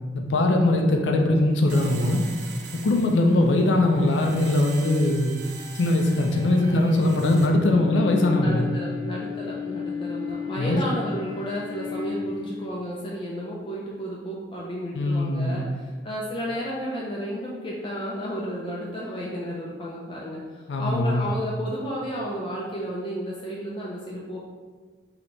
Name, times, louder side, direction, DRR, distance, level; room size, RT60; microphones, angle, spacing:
voice 1, 0.1-2.2 2.7-5.3 5.7-8.7 10.6-10.8 14.9-15.6 20.7-21.3, left 2 dB, 85° left, 2 dB, 0.4 m, -21 dB
sound 1, 1.7-12.7, left 5 dB, 30° right, 0.6 m, -36 dB
sound 2, 1.7-7.5, right 6 dB, 85° right, 0.6 m, -43 dB
voice 2, 8.4-24.4, equal, 30° left, -4 dB, 0.4 m, -32 dB
3.4 x 2.9 x 3.9 m, 1.5 s
head